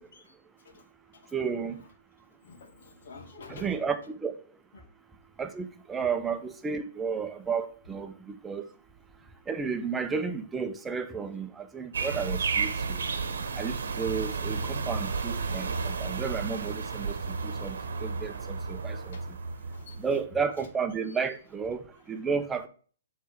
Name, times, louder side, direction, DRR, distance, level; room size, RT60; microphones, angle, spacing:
voice 1, 0.0-1.9 2.2-3.9 4.7-4.8 8.7-8.8 17.4-17.6 19.1-19.2 19.7-20.3 20.5-20.7 21.0-21.2 21.9-22.2, left 4 dB, 65° left, 1.5 m, -51 dB
voice 2, 1.3-1.8 3.5-4.3 5.4-8.7 9.5-13.1 13.6-19.2 20.0-22.7, right 5 dB, 10° right, 0.7 m, -32 dB
sound 1, 11.9-20.2, right 4 dB, 75° right, 1.1 m, -32 dB
7.6 x 3.4 x 4.9 m
hypercardioid pair, 130°, 0 cm